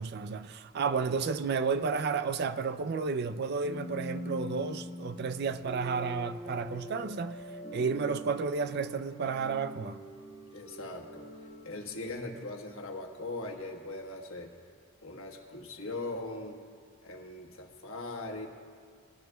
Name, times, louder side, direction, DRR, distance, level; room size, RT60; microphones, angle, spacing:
voice 1, 0.0-7.4 7.7-10.0, right 5 dB, 45° right, 0.3 m, -32 dB
sound 1, 3.6-12.6, equal, 25° right, 2.2 m, -44 dB
voice 2, 10.5-11.3 11.6-14.5 15.0-16.6 17.0-18.5, left 2 dB, 70° left, 1.3 m, -40 dB
19.5 x 12.0 x 2.2 m
head